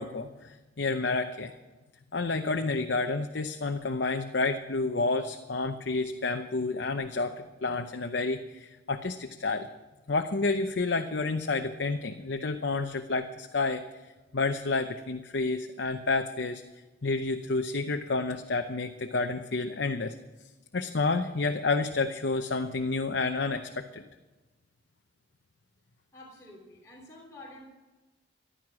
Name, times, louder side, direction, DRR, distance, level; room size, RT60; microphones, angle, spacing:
voice 1, 0.0-1.5 2.1-9.7 10.1-13.8 14.3-16.6 17.0-20.1 20.7-24.0, left 3 dB, 65° left, 5 dB, 0.8 m, -30 dB
voice 2, 26.1-27.6, left 1 dB, 20° left, -4 dB, 3.2 m, -49 dB
15.0 x 11.5 x 6.2 m, 1.2 s
head